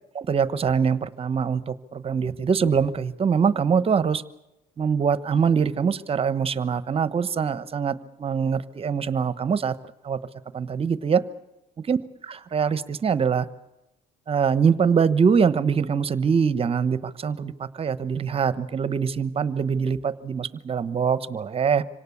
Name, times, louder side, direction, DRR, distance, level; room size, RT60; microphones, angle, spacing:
voice 1, 0.1-4.2 4.8-9.8 10.0-10.2 10.5-11.2 11.9-12.0 12.3-13.5 14.3-21.8, right 6 dB, 35° right, 15 dB, 1.0 m, -23 dB
26.0 x 18.0 x 8.5 m, 0.95 s
cardioid pair, 110°, 17 cm